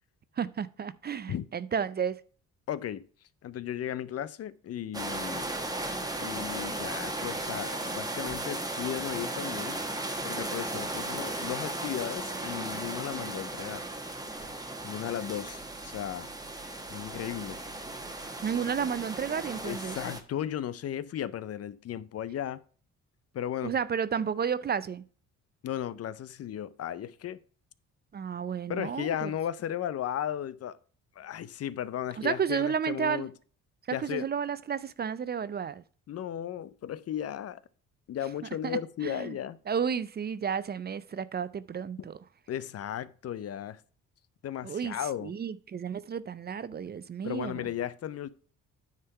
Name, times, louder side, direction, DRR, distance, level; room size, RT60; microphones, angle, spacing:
voice 1, 0.4-2.2 18.4-20.0 23.6-25.0 28.1-29.3 32.2-33.3 33.9-35.8 38.6-39.4 39.7-42.2 44.6-47.7, right 7 dB, 35° right, 0.4 m, -32 dB
voice 2, 2.7-3.0 3.4-5.5 6.2-9.8 10.2-13.8 14.8-16.3 16.9-17.6 19.6-22.6 23.3-23.7 25.6-27.4 28.7-30.8 31.2-33.3 33.9-34.3 36.1-37.6 38.1-39.6 42.5-43.8 44.4-45.3 47.2-48.3, left 10 dB, 55° left, 0.6 m, -35 dB
sound 1, 4.9-20.2, right 2 dB, 10° right, 1.2 m, -36 dB
9.6 x 3.7 x 5.6 m
cardioid pair, 90°, 30 cm